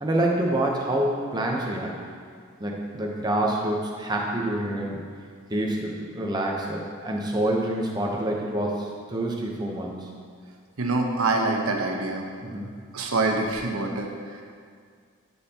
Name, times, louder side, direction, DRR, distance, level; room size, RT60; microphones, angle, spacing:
voice 1, 0.0-1.9 2.6-5.0 5.5-10.1 12.4-12.7, right 1 dB, 20° right, -1 dB, 0.8 m, -27 dB
voice 2, 10.8-12.3 12.9-14.4, right 2 dB, 80° right, 2 dB, 0.9 m, -25 dB
12.5 x 5.5 x 2.9 m, 2.1 s
head